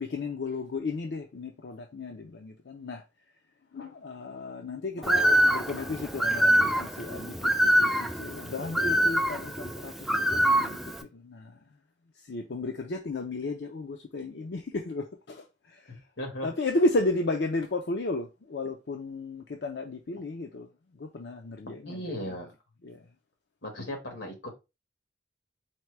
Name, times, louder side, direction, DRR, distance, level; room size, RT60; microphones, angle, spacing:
voice 1, 0.0-3.0 3.7-11.6 12.1-16.0 16.4-22.0 22.8-23.1, left 2 dB, 65° left, 0.5 m, -34 dB
Bird, 5.0-11.0, right 1 dB, ahead, 0.4 m, -25 dB
voice 2, 15.9-16.5 21.9-22.5 23.6-24.5, equal, 90° left, 1.7 m, -37 dB
4.4 x 2.2 x 4.5 m
head